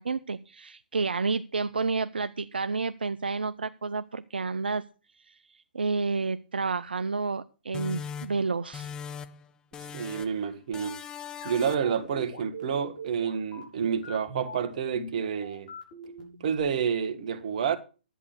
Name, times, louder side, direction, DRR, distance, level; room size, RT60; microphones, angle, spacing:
voice 1, 0.0-4.8 5.3-8.9, right 4 dB, 80° right, 0.6 m, -30 dB
sound 1, 7.7-9.5 9.7-10.4 10.7-12.0, left 7 dB, 15° left, 0.7 m, -40 dB
voice 2, 9.9-11.0 11.4-15.7 16.4-17.8, right 7 dB, 50° right, 1.8 m, -29 dB
sound 2, 11.4-16.6, equal, 50° left, 7.0 m, -43 dB
11.0 x 8.4 x 6.4 m
figure-of-eight pair, 130°, 5 cm